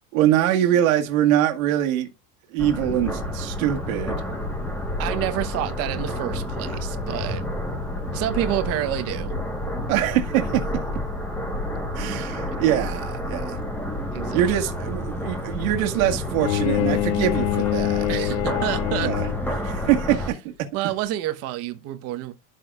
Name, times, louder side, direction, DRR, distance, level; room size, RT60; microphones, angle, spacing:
voice 1, 0.1-2.1 2.5-4.2 9.9-10.6 11.9-13.6 14.3-18.1 19.0-19.2 19.6-20.5, right 11 dB, 90° right, 1.8 m, -23 dB
sound 1, 2.6-20.3, left 1 dB, 5° left, 1.4 m, -30 dB
voice 2, 5.0-7.4 8.1-9.4 14.1-14.6 18.1-19.1 20.7-22.3, right 13 dB, 35° right, 1.1 m, -28 dB
Bowed string instrument, 16.4-19.6, left 16 dB, 80° left, 0.5 m, -25 dB
11.5 x 6.3 x 2.4 m
cardioid pair, 175°, 40 cm